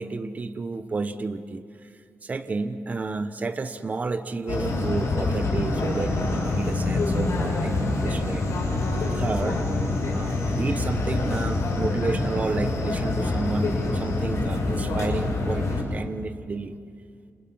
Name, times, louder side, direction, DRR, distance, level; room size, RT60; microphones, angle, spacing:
voice 1, 0.0-1.9 2.2-8.5 8.8-9.6 10.1-16.7, right 3 dB, 30° right, 9 dB, 1.0 m, -31 dB
sound 1, 4.5-15.8, left 2 dB, 70° left, 6.6 m, -26 dB
29.5 x 28.5 x 5.6 m, 2.2 s
wide cardioid pair, 145°, 5 cm